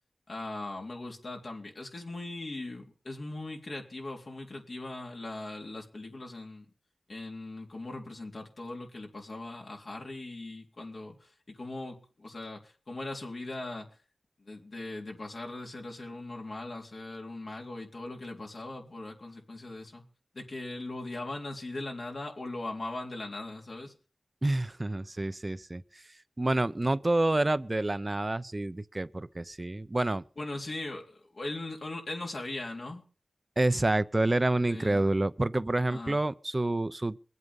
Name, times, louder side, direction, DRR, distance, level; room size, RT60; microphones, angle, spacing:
voice 1, 0.3-6.7 7.1-13.9 14.4-20.0 20.3-23.9 30.4-33.0 34.7-35.0 35.9-36.2, left 2 dB, 65° left, 3.6 m, -39 dB
voice 2, 24.4-26.0 26.4-30.2 33.6-37.2, right 2 dB, 35° right, 0.7 m, -28 dB
22.5 x 8.2 x 5.4 m
cardioid pair, 45°, 0 cm